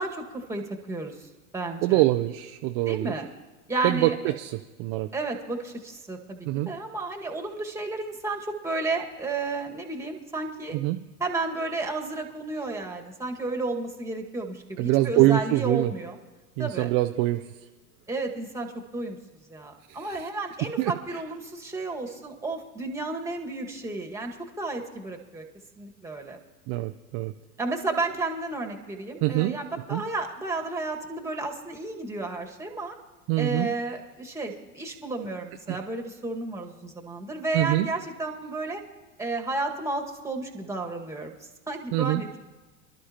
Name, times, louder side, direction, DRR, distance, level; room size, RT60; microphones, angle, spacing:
voice 1, 0.0-2.0 2.9-3.3 3.7-4.1 5.1-10.8 11.2-16.2 16.6-16.9 18.1-19.2 19.5-25.4 25.8-26.4 27.6-33.0 33.4-38.8 39.2-41.3 41.7-42.4, right 2 dB, 5° right, 2 dB, 1.8 m, -32 dB
voice 2, 1.8-3.1 3.8-5.1 6.5-6.7 10.7-11.0 14.8-15.9 16.6-17.4 19.9-20.3 20.8-20.9 26.7-27.3 29.2-29.6 29.9-30.0 33.3-33.7 35.7-35.8 37.5-37.9 41.9-42.2, right 17 dB, 40° right, 7 dB, 0.5 m, -24 dB
26.0 x 12.0 x 2.9 m, 1.3 s
hypercardioid pair, 95°, 45 cm